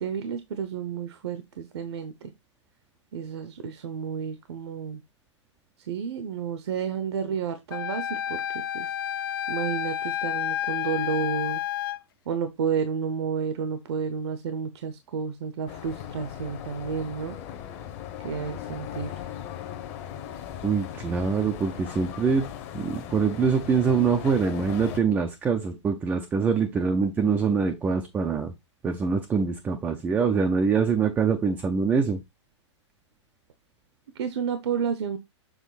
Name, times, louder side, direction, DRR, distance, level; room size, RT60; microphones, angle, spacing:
voice 1, 0.0-2.3 3.1-5.0 5.9-8.4 8.7-8.9 9.5-11.6 12.3-17.4 18.2-19.1 34.1-35.2, right 6 dB, 60° right, 0.9 m, -31 dB
Wind instrument woodwind instrument, 7.7-12.0, left 11 dB, 45° left, 0.4 m, -30 dB
sound 1, 15.7-25.0, left 10 dB, 30° left, 1.0 m, -38 dB
voice 2, 20.6-22.5 22.7-28.5 28.8-32.2, right 5 dB, 10° right, 0.5 m, -24 dB
7.2 x 3.7 x 4.0 m
hypercardioid pair, 165°, 16 cm